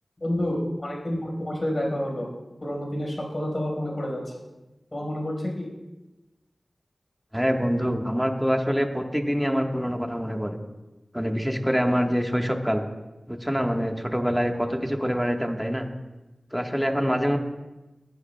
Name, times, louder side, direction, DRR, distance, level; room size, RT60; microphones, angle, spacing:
voice 1, 0.2-2.3 2.6-4.2 4.9-5.7, left 1 dB, 40° left, -1 dB, 4.8 m, -29 dB
voice 2, 7.3-10.6 11.1-12.9 13.3-15.9 16.5-17.4, equal, 5° right, 3 dB, 1.3 m, -25 dB
21.0 x 11.0 x 2.3 m, 1.1 s
wide cardioid pair, 50°, 0 cm